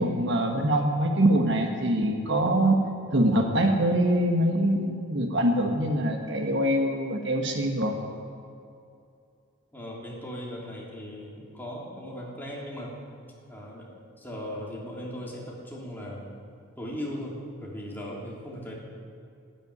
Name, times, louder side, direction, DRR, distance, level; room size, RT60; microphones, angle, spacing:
voice 1, 0.0-2.8 3.1-8.0, right 1 dB, 60° right, 3 dB, 1.5 m, -24 dB
voice 2, 9.7-12.9 13.5-13.9 14.2-16.2 16.8-18.8, equal, 10° left, -4 dB, 3.2 m, -38 dB
12.5 x 12.0 x 9.7 m, 2.5 s
head